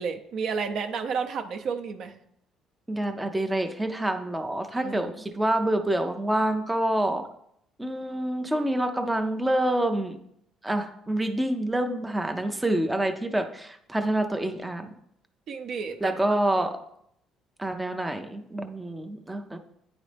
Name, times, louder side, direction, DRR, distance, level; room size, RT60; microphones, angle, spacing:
voice 1, 0.0-2.1 4.7-5.1 15.5-16.6, right 5 dB, 55° right, 6 dB, 0.6 m, -32 dB
voice 2, 2.9-7.2 7.8-10.2 10.6-14.9 16.0-16.8 17.6-19.6, right 1 dB, 10° right, 5 dB, 0.4 m, -27 dB
9.7 x 4.0 x 3.3 m, 0.73 s
cardioid pair, 135°, 0 cm